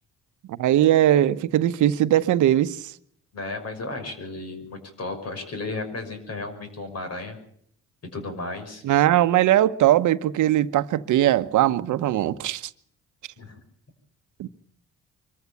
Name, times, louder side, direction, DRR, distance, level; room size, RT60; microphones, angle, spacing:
voice 1, 0.5-2.9 8.8-12.7 14.4-14.5, right 13 dB, 80° right, 1.0 m, -20 dB
voice 2, 3.3-7.4 8.0-8.8 13.4-13.6, left 3 dB, 55° left, 6.1 m, -34 dB
24.0 x 14.5 x 8.5 m
cardioid pair, 90°, 30 cm